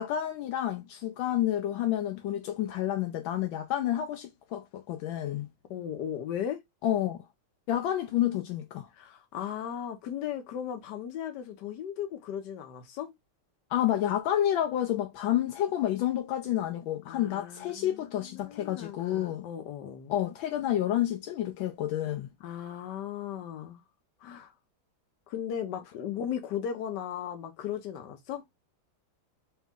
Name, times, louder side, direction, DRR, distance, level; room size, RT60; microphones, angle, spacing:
voice 1, 0.0-5.5 6.8-7.2 7.7-8.9 13.7-19.4 20.1-22.3, left 12 dB, 80° left, 1.3 m, -29 dB
voice 2, 5.7-6.6 8.9-13.1 17.1-20.1 22.4-23.8 24.2-24.5 25.3-28.4, left 9 dB, 65° left, 1.4 m, -37 dB
3.3 x 3.1 x 3.5 m
omnidirectional pair, 2.2 m